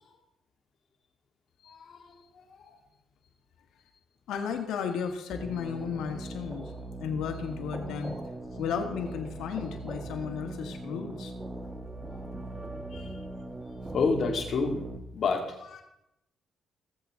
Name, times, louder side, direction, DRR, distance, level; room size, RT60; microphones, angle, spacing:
voice 1, 1.7-2.7 12.1-12.2 12.9-13.1 13.9-14.9 15.1-15.8, left 4 dB, 60° left, 2 dB, 2.5 m, -30 dB
voice 2, 4.3-6.7 7.0-8.2 8.6-11.3, left 7 dB, 80° left, 5 dB, 1.6 m, -34 dB
sound 1, 5.3-15.0, right 2 dB, 20° right, 1.4 m, -40 dB
17.5 x 7.6 x 3.8 m, 0.85 s
cardioid pair, 90°, 0 cm